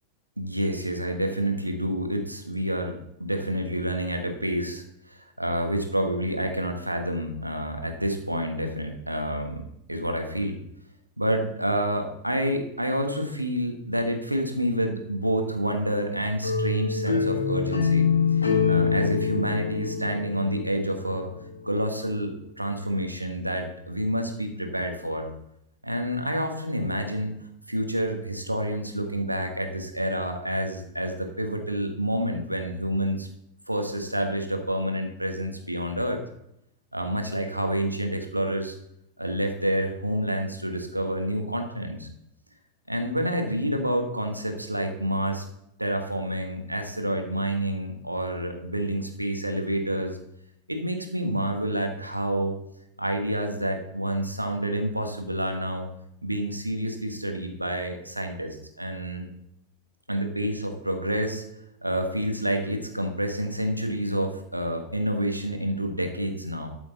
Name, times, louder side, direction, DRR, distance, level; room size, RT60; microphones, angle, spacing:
voice 1, 0.4-9.6 9.9-10.6 11.2-21.3 21.6-25.3 25.8-27.4 27.7-33.3 33.7-36.2 36.9-38.7 39.2-42.1 42.9-45.4 45.8-50.2 50.7-52.5 53.0-55.9 56.2-59.3 60.1-61.4 61.8-66.7, right 1 dB, 85° right, 5 dB, 1.5 m, -28 dB
sound 1, 16.4-21.3, left 5 dB, 80° left, 2.0 m, -25 dB
12.5 x 6.9 x 4.0 m, 0.78 s
figure-of-eight pair, 90°, 0 cm